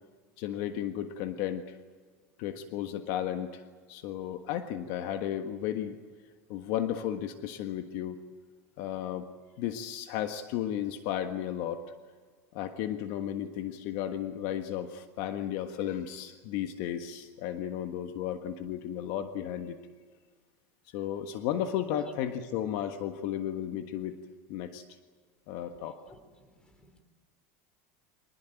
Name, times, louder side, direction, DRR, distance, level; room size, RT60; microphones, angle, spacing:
voice 1, 0.4-1.8 2.4-3.6 3.9-6.0 6.5-8.2 8.8-9.3 9.6-11.8 12.5-19.8 20.9-24.2 24.5-24.8 25.5-26.0, left 10 dB, 60° left, 7 dB, 1.5 m, -34 dB
voice 2, 25.7-27.0, left 1 dB, 10° left, 7 dB, 3.9 m, -58 dB
24.5 x 19.5 x 9.2 m, 1.5 s
supercardioid pair, 135°, 7 cm